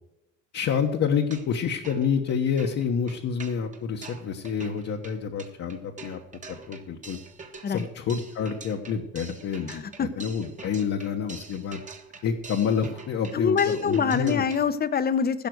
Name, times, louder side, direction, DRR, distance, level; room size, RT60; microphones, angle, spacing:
voice 1, 0.5-6.2 6.7-7.2 7.7-11.8 12.2-14.4, left 7 dB, 55° left, 2 dB, 1.3 m, -28 dB
sound 1, 1.2-1.6 1.8-14.7, right 4 dB, 25° right, 1.5 m, -45 dB
voice 2, 9.7-10.1 13.3-15.5, left 6 dB, 30° left, 12 dB, 0.9 m, -25 dB
16.0 x 5.8 x 7.9 m, 0.89 s
cardioid pair, 120°, 30 cm